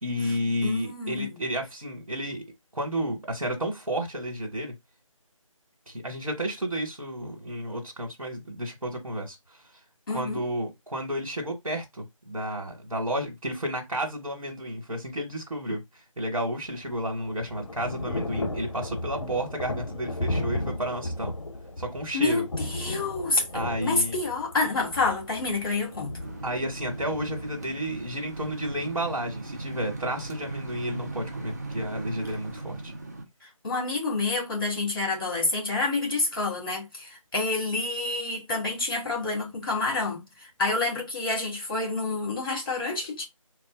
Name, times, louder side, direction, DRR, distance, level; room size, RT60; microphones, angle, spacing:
voice 1, 0.0-2.4 2.7-4.7 5.9-9.6 10.1-15.8 16.2-21.3 21.8-22.4 23.5-24.2 26.4-32.9, equal, 75° right, 1.2 m, -31 dB
voice 2, 0.6-1.4 10.1-10.4 22.1-26.1 33.6-43.3, left 3 dB, 40° left, 1.4 m, -28 dB
Thunder / Rain, 16.7-28.6, left 1 dB, 60° left, 0.7 m, -35 dB
sound 1, 26.2-33.3, right 2 dB, 30° right, 0.4 m, -38 dB
3.4 x 2.1 x 2.4 m
figure-of-eight pair, 165°, 18 cm